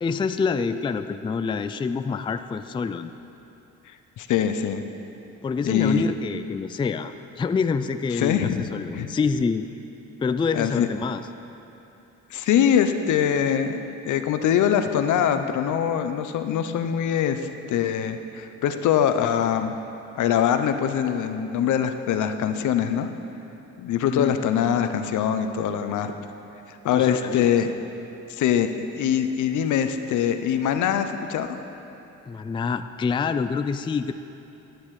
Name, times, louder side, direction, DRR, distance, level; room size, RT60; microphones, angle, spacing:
voice 1, 0.0-3.1 5.4-9.7 10.2-11.2 24.1-24.3 26.9-27.5 32.3-34.1, left 5 dB, 15° left, 10 dB, 0.3 m, -26 dB
voice 2, 4.2-4.8 5.6-6.1 8.1-9.1 10.5-10.9 12.3-13.8 14.0-19.8 20.1-23.1 23.8-26.1 26.8-27.7 28.3-31.6, left 9 dB, 75° left, 8 dB, 0.8 m, -23 dB
11.0 x 10.5 x 4.8 m, 2.9 s
cardioid pair, 90°, 30 cm